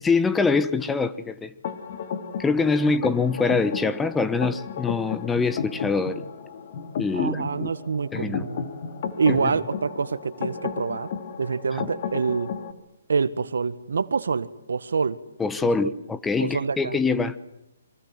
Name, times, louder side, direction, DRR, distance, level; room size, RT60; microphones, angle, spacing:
voice 1, 0.0-1.5 2.4-6.2 7.0-7.7 8.1-8.5 9.3-9.5 11.7-11.9 15.4-17.4, left 4 dB, 10° left, 1.0 m, -24 dB
sound 1, 1.6-12.7, left 6 dB, 50° left, 2.7 m, -34 dB
voice 2, 7.1-8.7 9.2-11.1 11.4-12.5 13.1-15.2 16.4-17.0, right 5 dB, 80° right, 1.5 m, -26 dB
28.0 x 24.0 x 7.7 m
hypercardioid pair, 145°, 0 cm